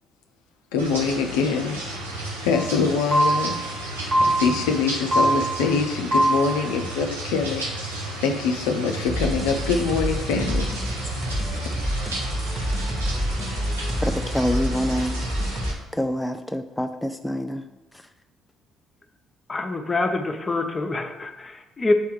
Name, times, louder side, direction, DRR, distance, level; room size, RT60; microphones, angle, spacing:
voice 1, 0.7-1.8 2.4-3.6 4.3-7.7 8.2-10.7, left 5 dB, 75° left, 0.5 m, -24 dB
sound 1, 0.8-15.7, right 1 dB, 90° right, 0.8 m, -33 dB
sound 2, 2.5-2.7 3.1-3.7 4.1-4.7 5.1-5.7 6.1-6.7, right 1 dB, 50° right, 1.3 m, -22 dB
sound 3, 9.1-15.7, equal, 10° right, 1.2 m, -28 dB
voice 2, 14.0-15.2 15.9-17.7 17.9-18.0, equal, 10° left, 0.4 m, -26 dB
voice 3, 19.5-21.9, left 2 dB, 30° left, 0.8 m, -25 dB
7.7 x 3.4 x 4.7 m
hypercardioid pair, 50°, 0 cm